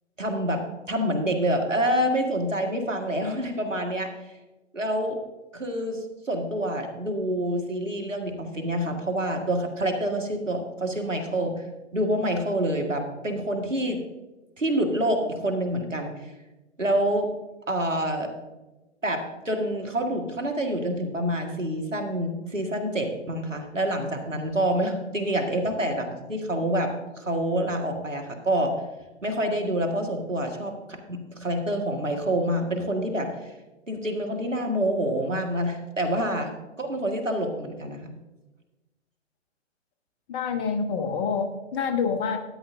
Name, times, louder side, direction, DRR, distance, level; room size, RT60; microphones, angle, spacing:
voice 1, 0.2-4.1 4.7-5.2 5.5-11.5 11.9-14.0 14.6-16.1 16.8-17.3 17.7-18.3 19.0-28.8 29.2-33.5 33.9-38.0, right 1 dB, 85° right, 2 dB, 1.8 m, -27 dB
voice 2, 40.3-42.4, left 5 dB, 25° left, 7 dB, 0.8 m, -27 dB
13.0 x 10.0 x 2.6 m, 1.1 s
figure-of-eight pair, 120°, 37 cm